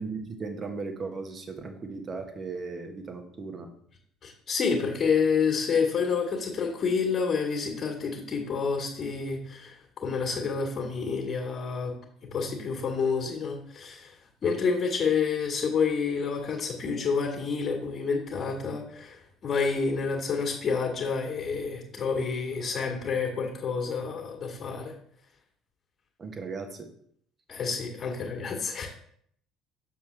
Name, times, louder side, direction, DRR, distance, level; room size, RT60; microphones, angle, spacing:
voice 1, 0.0-3.7 26.2-26.9, right 4 dB, 35° right, 5 dB, 1.3 m, -37 dB
voice 2, 4.2-11.9 12.3-14.1 14.4-19.2 19.4-24.9 27.5-28.9, left 5 dB, 40° left, 0 dB, 1.8 m, -28 dB
7.0 x 6.8 x 3.4 m, 0.65 s
figure-of-eight pair, 55°, 0 cm